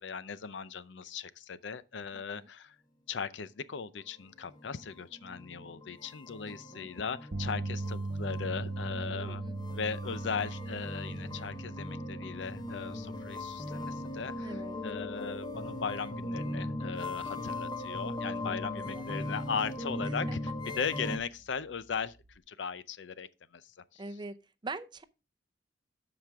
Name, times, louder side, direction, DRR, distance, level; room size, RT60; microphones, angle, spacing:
voice 1, 0.0-2.8 3.1-9.4 9.7-14.6 14.8-20.4 20.8-22.2 22.5-23.3 23.5-24.0, left 6 dB, 85° left, 0.6 m, -38 dB
voice 2, 2.1-2.5 6.4-6.9 9.0-9.6 14.4-14.8 18.4-19.1 20.0-20.4 24.0-24.4 24.6-25.0, right 3 dB, 25° right, 0.6 m, -44 dB
sound 1, 4.2-21.2, left 1 dB, 25° left, 0.9 m, -39 dB
sound 2, 7.3-19.6 19.9-20.2 22.4-22.5, right 2 dB, 55° right, 0.7 m, -41 dB
13.0 x 5.0 x 3.5 m
head